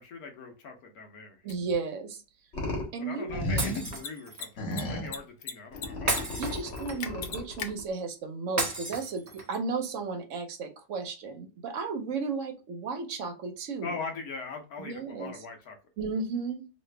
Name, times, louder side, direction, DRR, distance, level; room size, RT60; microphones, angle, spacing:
voice 1, 0.0-1.4 3.0-6.7 13.8-15.8, left 4 dB, 65° left, 3 dB, 1.2 m, -41 dB
voice 2, 1.4-2.2 2.9-3.6 6.4-13.9 14.8-15.5 16.0-16.6, right 4 dB, 60° right, 6 dB, 0.8 m, -34 dB
Mechanisms, 1.5-1.6 3.9-4.1 4.3-4.5 4.7-5.5 5.8-6.2 6.5-6.6 7.0-7.7, left 7 dB, 85° left, 1.3 m, -36 dB
sound 1, 2.5-2.9 3.3-4.0 4.6-5.2 5.7-7.8, left 1 dB, 45° left, 1.4 m, -33 dB
Shatter, 3.6-4.5 6.1-7.2 8.6-9.6, right 2 dB, 15° right, 0.6 m, -33 dB
3.1 x 2.5 x 3.2 m, 0.31 s
omnidirectional pair, 1.8 m